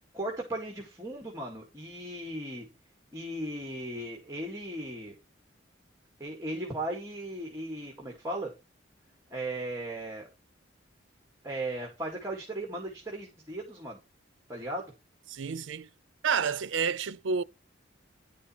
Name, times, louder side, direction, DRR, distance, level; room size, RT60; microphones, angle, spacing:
voice 1, 0.1-2.7 3.1-5.1 6.2-8.5 9.3-10.3 11.4-14.0 14.5-14.9, right 1 dB, 15° right, 2.1 m, -37 dB
voice 2, 15.3-15.9 16.2-17.4, right 6 dB, 80° right, 0.5 m, -29 dB
10.5 x 5.4 x 4.4 m
head